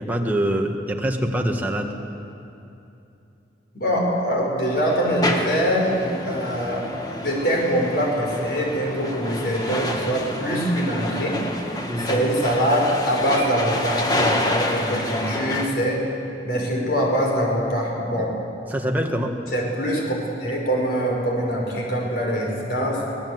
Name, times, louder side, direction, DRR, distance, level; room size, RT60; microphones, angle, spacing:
voice 1, 0.0-1.9 11.9-12.2 15.2-15.3 18.7-19.3, right 1 dB, 10° right, 1 dB, 1.8 m, -24 dB
voice 2, 3.7-6.9 7.2-11.4 12.0-16.0 16.5-18.3 19.5-23.0, equal, 60° left, -1 dB, 5.5 m, -23 dB
sound 1, 4.9-15.7, left 1 dB, 20° left, 1.7 m, -28 dB
24.0 x 18.5 x 8.1 m, 2.8 s
head